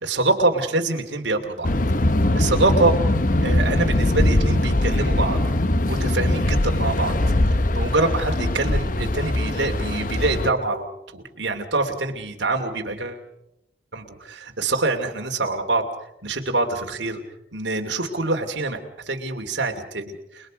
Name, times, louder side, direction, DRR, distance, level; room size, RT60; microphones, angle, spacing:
voice 1, 0.0-1.7 2.3-3.0 3.4-5.4 5.8-7.1 7.5-13.2 13.9-15.9 16.2-17.2 17.5-18.8 19.1-20.5, right 2 dB, 70° right, 3 dB, 2.7 m, -25 dB
sound 1, 1.6-10.5, left 1 dB, 45° left, 0.9 m, -21 dB
30.0 x 21.0 x 5.2 m, 0.86 s
head